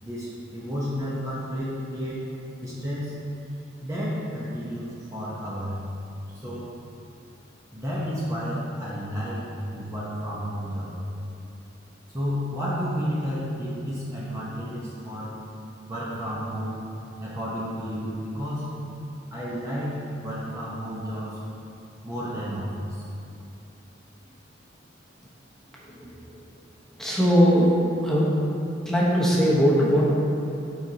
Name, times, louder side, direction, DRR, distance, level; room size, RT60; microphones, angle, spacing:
voice 1, 0.0-2.2 2.6-3.2 3.8-5.8 6.3-6.7 7.7-9.4 9.7-10.9 12.1-15.3 15.9-16.8 17.2-18.7 19.3-21.4 22.0-23.0, equal, 15° right, -8 dB, 1.0 m, -31 dB
voice 2, 25.8-26.4 27.0-28.3 28.8-30.0, equal, 5° left, -7 dB, 1.2 m, -21 dB
9.3 x 5.3 x 2.9 m, 2.7 s
head